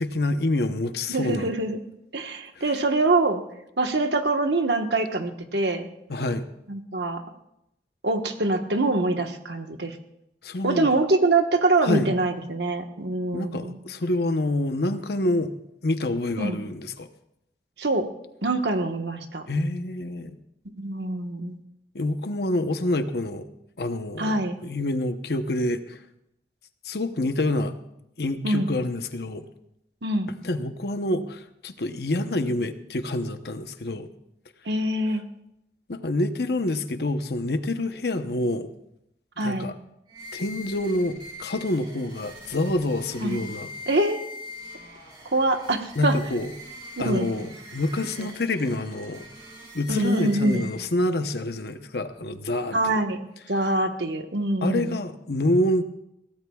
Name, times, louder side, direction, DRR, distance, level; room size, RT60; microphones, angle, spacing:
voice 1, 0.0-1.5 6.1-6.5 10.4-10.9 11.8-12.1 13.3-15.5 15.8-17.1 19.5-20.4 21.9-23.5 23.8-26.0 26.8-27.7 28.2-29.5 30.4-34.1 35.9-38.7 39.4-39.7 40.3-43.7 46.0-46.5 47.0-49.2 49.7-53.0 54.6-55.8, left 1 dB, 65° left, 8 dB, 0.9 m, -27 dB
voice 2, 1.1-1.8 2.1-3.4 3.8-5.9 6.7-7.2 8.0-10.0 10.6-13.8 16.4-16.6 17.8-18.1 18.4-19.5 20.8-21.6 24.2-24.6 28.4-28.7 30.0-30.3 34.6-35.2 39.4-39.7 43.2-43.4 43.9-44.2 45.3-46.1 47.0-47.3 48.2-48.3 49.9-50.7 52.7-53.2 53.5-55.0, right 2 dB, 80° right, 5 dB, 1.3 m, -24 dB
sound 1, 40.1-51.1, left 1 dB, 25° right, 4.2 m, -43 dB
22.0 x 16.5 x 2.4 m, 0.82 s
head